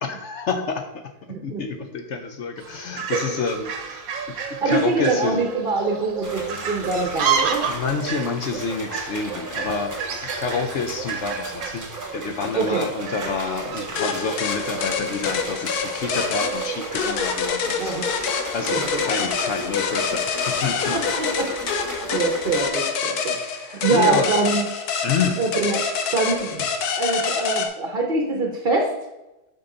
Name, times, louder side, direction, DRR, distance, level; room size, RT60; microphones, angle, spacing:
voice 1, 0.0-1.0 1.4-4.4 4.7-5.5 7.7-10.0 10.4-11.9 12.1-21.0 22.4-22.6 23.4-24.3 25.0-25.4, left 5 dB, 60° left, 6 dB, 0.8 m, -28 dB
voice 2, 1.3-1.6 3.1-3.2 4.6-7.7 12.5-12.9 17.8-18.1 18.7-19.0 20.9-21.5 22.1-24.6 25.4-25.8 26.1-26.6 27.0-28.9, right 3 dB, 40° right, 2 dB, 0.9 m, -24 dB
Fowl, 2.6-17.4, right 7 dB, 70° right, 1.3 m, -31 dB
sound 1, 6.2-22.7, equal, 15° right, 0.8 m, -35 dB
sound 2, 14.0-27.7, left 6 dB, 85° left, 1.3 m, -26 dB
7.8 x 5.4 x 3.8 m, 0.99 s
omnidirectional pair, 1.6 m